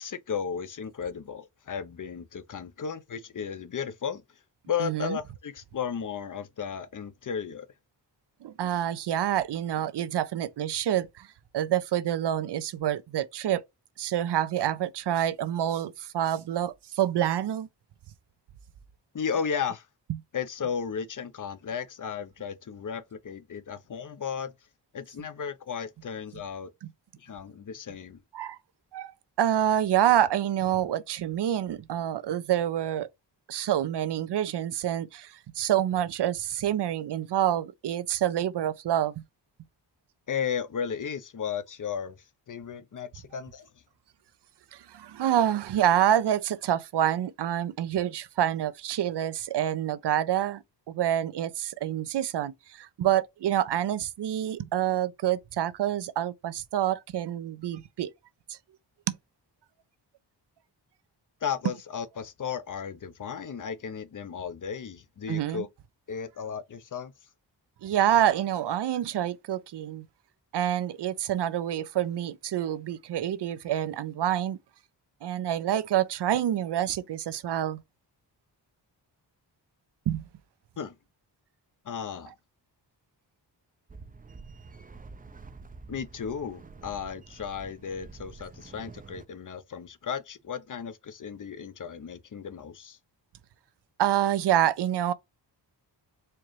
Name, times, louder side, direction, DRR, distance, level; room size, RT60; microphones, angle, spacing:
voice 1, 0.0-4.2 4.7-7.7 19.1-19.9 20.3-24.5 24.9-26.7 27.2-28.2 40.3-42.2 42.5-43.7 61.4-65.7 66.1-67.1 80.8-80.9 81.8-82.3 85.9-93.0, left 7 dB, 45° left, 0.7 m, -34 dB
voice 2, 4.8-5.2 8.4-11.3 11.5-13.6 14.0-17.7 26.8-26.9 28.3-28.6 28.9-29.1 29.4-33.1 33.5-39.1 44.7-58.1 58.5-58.6 59.1-59.2 65.3-65.7 67.8-70.1 70.5-74.6 75.2-77.8 80.1-80.2 94.0-95.1, right 11 dB, 70° right, 0.6 m, -27 dB
sound 1, 83.9-89.3, right 4 dB, 20° right, 0.5 m, -47 dB
4.5 x 2.4 x 3.1 m
cardioid pair, 75°, 43 cm